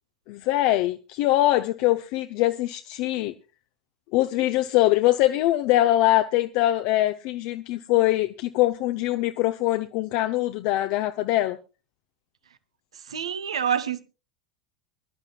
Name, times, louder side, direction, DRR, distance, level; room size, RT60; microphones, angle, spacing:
voice 1, 0.3-3.3 4.1-11.6, left 15 dB, 50° left, 0.6 m, -23 dB
voice 2, 12.9-14.0, right 8 dB, 75° right, 0.9 m, -27 dB
24.0 x 11.5 x 2.3 m
figure-of-eight pair, 80°, 3 cm